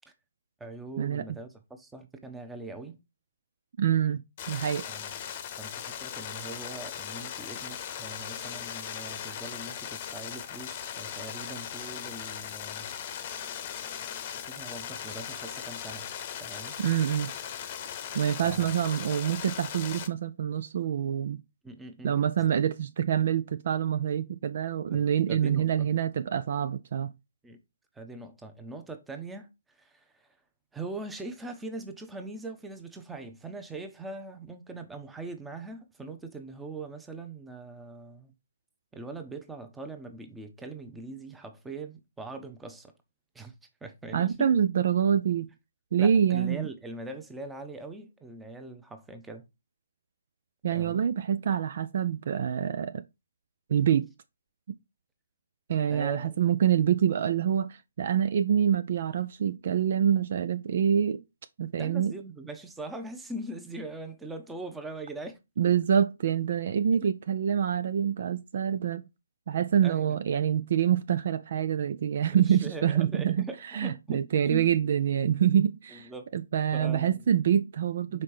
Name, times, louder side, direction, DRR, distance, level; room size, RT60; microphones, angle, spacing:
voice 1, 0.6-3.0 4.9-5.2 5.6-12.9 14.4-16.1 16.4-16.8 18.4-18.7 21.6-22.6 24.9-25.7 27.4-27.6 27.9-30.3 30.7-38.3 38.9-42.9 43.3-43.5 43.8-44.5 46.0-49.5 50.7-51.0 55.9-56.4 61.8-65.4 67.0-67.1 69.8-70.2 72.3-74.7 75.9-76.2 76.7-77.3 78.1-78.2, right 2 dB, 5° right, 0.9 m, -41 dB
voice 2, 3.8-4.8 16.8-17.3 18.1-21.4 22.0-27.1 44.1-45.5 45.9-46.7 50.6-53.0 53.7-54.1 54.7-54.8 55.7-61.2 61.6-62.1 65.6-69.0 69.5-73.5 73.7-78.2, right 9 dB, 50° right, 0.4 m, -26 dB
sound 1, 4.4-20.1, left 9 dB, 35° left, 0.9 m, -38 dB
5.6 x 4.4 x 4.8 m
figure-of-eight pair, 140°, 0 cm